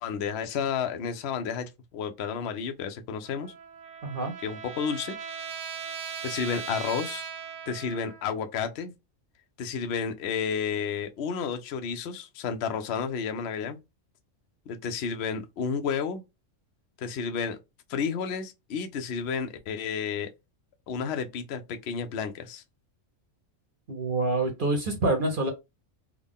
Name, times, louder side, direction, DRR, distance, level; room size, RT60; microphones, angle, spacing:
voice 1, 0.0-3.5 4.4-5.1 6.2-7.2 7.7-8.9 9.6-13.8 14.7-16.2 17.0-17.6 17.9-20.3 20.9-22.6, left 6 dB, 60° left, 0.8 m, -31 dB
Trumpet, 3.2-8.4, right 6 dB, 80° right, 1.2 m, -39 dB
voice 2, 4.0-4.3 23.9-25.5, right 2 dB, 45° right, 0.8 m, -26 dB
3.6 x 2.1 x 3.6 m
omnidirectional pair, 1.4 m